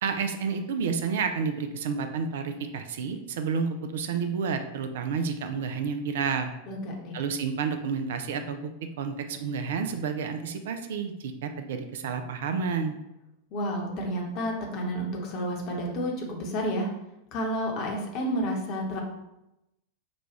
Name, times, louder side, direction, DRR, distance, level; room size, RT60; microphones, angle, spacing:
voice 1, 0.0-6.5 7.1-8.6 9.0-12.9, right 5 dB, 55° right, 7 dB, 0.3 m, -30 dB
voice 2, 6.7-7.2 13.5-16.9 17.3-19.0, equal, 40° left, 0 dB, 0.9 m, -30 dB
5.0 x 2.3 x 3.0 m, 0.89 s
figure-of-eight pair, 90°, 0 cm